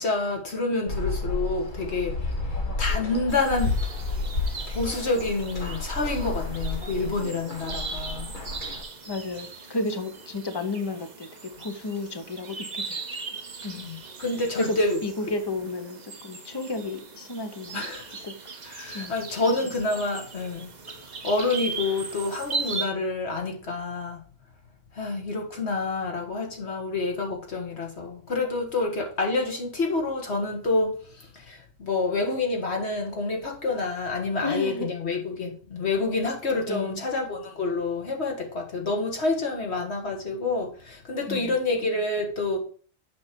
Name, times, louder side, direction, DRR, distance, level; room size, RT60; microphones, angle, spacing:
voice 1, 0.0-2.2 2.5-3.8 4.7-8.3 13.7-15.0 17.7-18.1 18.6-20.7 21.2-24.2 24.9-42.6, left 3 dB, 60° left, 2.0 m, -28 dB
sound 1, 0.9-8.8, left 3 dB, 40° left, 1.9 m, -31 dB
sound 2, 3.3-22.9, right 4 dB, 40° right, 0.9 m, -39 dB
voice 2, 9.0-13.1 13.6-13.8 14.6-17.9 18.1-18.3 18.9-19.8 34.4-34.9 36.7-37.0 41.3-41.6, left 2 dB, 20° left, 0.9 m, -33 dB
7.9 x 5.2 x 5.3 m
omnidirectional pair, 1.3 m